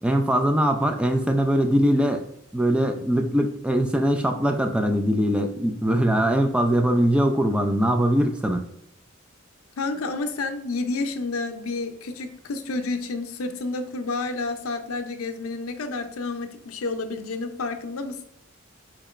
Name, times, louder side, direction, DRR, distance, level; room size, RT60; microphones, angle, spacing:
voice 1, 0.0-2.3 2.5-8.6, equal, 5° right, 4 dB, 0.3 m, -22 dB
voice 2, 9.8-18.1, left 3 dB, 75° left, 6 dB, 0.6 m, -30 dB
6.5 x 2.9 x 2.4 m, 0.77 s
head